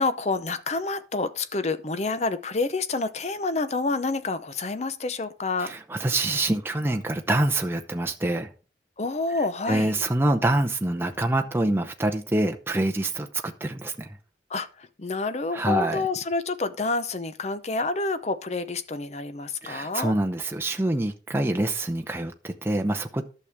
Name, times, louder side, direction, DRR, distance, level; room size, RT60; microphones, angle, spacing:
voice 1, 0.0-5.7 9.0-9.9 14.5-20.1, left 3 dB, 35° left, 0.6 m, -28 dB
voice 2, 5.6-8.5 9.7-14.2 15.5-16.0 19.6-23.2, right 1 dB, 15° right, 0.6 m, -26 dB
11.5 x 6.6 x 3.4 m
head